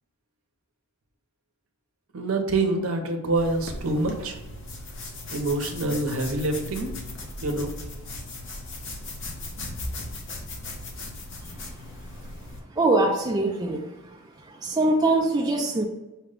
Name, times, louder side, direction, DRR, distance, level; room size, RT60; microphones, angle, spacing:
voice 1, 2.1-4.4 5.3-6.9 7.4-7.7, right 2 dB, 70° right, 4 dB, 0.7 m, -26 dB
sound 1, 3.4-12.6, left 2 dB, 60° left, 0.8 m, -37 dB
voice 2, 12.8-13.9 14.5-15.8, right 2 dB, 20° right, 1 dB, 0.4 m, -23 dB
5.7 x 2.2 x 3.7 m, 1.1 s
head